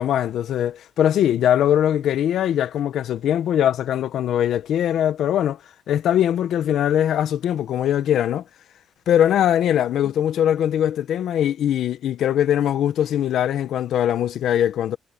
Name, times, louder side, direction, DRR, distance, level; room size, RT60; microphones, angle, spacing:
voice 1, 0.0-5.6 5.9-8.4 9.1-15.0, left 10 dB, 75° left, 1.1 m, -21 dB
cardioid pair, 90°, 0 cm